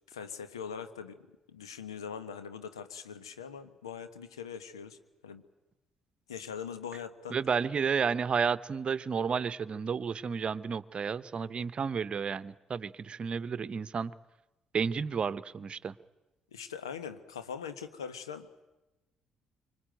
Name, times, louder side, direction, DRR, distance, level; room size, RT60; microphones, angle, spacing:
voice 1, 0.1-5.0 5.2-5.4 6.3-7.4 16.5-18.6, left 7 dB, 85° left, 11 dB, 1.2 m, -42 dB
voice 2, 7.3-14.1 14.7-15.9, right 6 dB, 45° right, 16 dB, 0.9 m, -31 dB
25.0 x 24.5 x 9.0 m, 1.0 s
hypercardioid pair, 45°, 3 cm